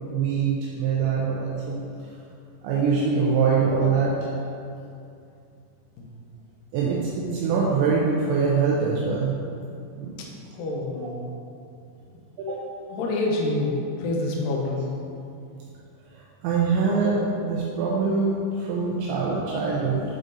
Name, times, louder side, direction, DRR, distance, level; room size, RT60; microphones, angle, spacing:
voice 1, 0.1-1.8 2.6-4.1 6.7-9.3 10.0-10.1 11.0-11.1 12.4-12.6 16.4-20.0, right 5 dB, 85° right, -5 dB, 2.9 m, -23 dB
voice 2, 10.6-11.2 12.9-14.9, left 2 dB, 85° left, -2 dB, 2.0 m, -27 dB
9.0 x 3.8 x 3.9 m, 2.5 s
omnidirectional pair, 5.2 m